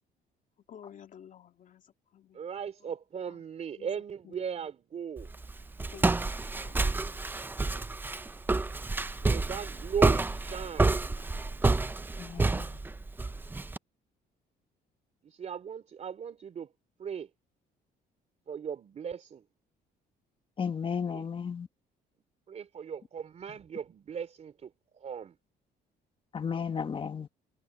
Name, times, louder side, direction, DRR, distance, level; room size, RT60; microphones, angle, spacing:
voice 1, 0.7-2.4 2.8-2.9 3.3-3.4 3.8-3.9 4.2-4.7 5.9-6.9, left 9 dB, 50° left, 2.6 m, -52 dB
voice 2, 2.3-5.3 9.2-10.9 15.2-16.7 17.0-17.3 18.5-19.4 21.1-21.2 22.5-25.4, right 7 dB, 40° right, 3.2 m, -38 dB
Walk footsteps, 5.2-13.8, right 3 dB, 10° right, 0.5 m, -29 dB
voice 3, 12.2-12.7 20.6-21.7 26.3-27.3, left 6 dB, 30° left, 1.2 m, -33 dB
cardioid pair, 110°, 17 cm